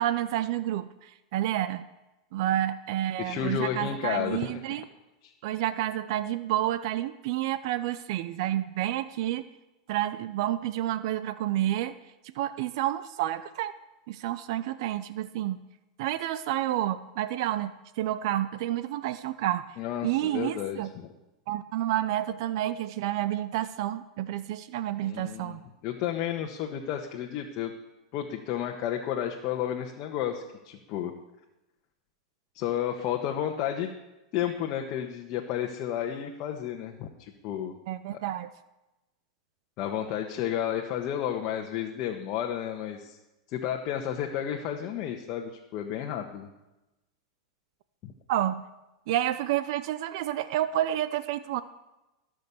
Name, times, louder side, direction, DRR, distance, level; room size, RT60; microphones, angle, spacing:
voice 1, 0.0-1.8 2.3-4.8 5.4-9.4 9.9-11.9 12.3-13.7 14.1-15.6 16.0-19.7 20.0-20.9 21.5-25.6 37.9-38.5 48.3-48.6 49.1-51.6, right 13 dB, 65° right, 14 dB, 0.7 m, -29 dB
voice 2, 3.2-4.7 5.2-5.3 19.8-21.1 25.0-25.6 25.8-27.7 28.1-31.1 32.5-33.9 34.3-37.7 39.8-43.2 43.5-46.5 48.0-48.1, left 10 dB, 50° left, 1 dB, 1.4 m, -32 dB
17.5 x 6.4 x 7.1 m, 1.0 s
hypercardioid pair, 115°, 3 cm